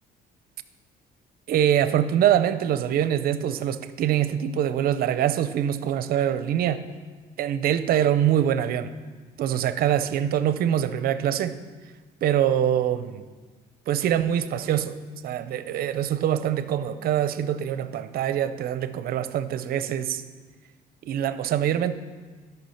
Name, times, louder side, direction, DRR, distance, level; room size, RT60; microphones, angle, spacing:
voice 1, 1.5-6.8 7.4-8.9 9.4-11.5 12.2-13.2 13.9-15.0 15.2-20.2 21.1-21.9, right 10 dB, 60° right, 13 dB, 0.6 m, -24 dB
12.0 x 5.9 x 5.7 m, 1.4 s
cardioid pair, 110°, 17 cm